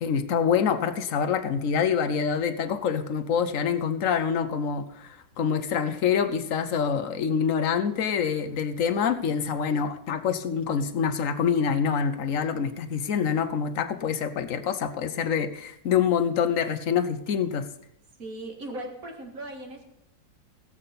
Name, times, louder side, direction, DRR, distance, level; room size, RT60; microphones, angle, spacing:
voice 1, 0.0-17.7, left 7 dB, 60° left, 10 dB, 1.2 m, -26 dB
voice 2, 18.2-19.9, right 1 dB, 60° right, 2 dB, 2.4 m, -38 dB
17.5 x 7.9 x 4.2 m, 0.84 s
omnidirectional pair, 1.7 m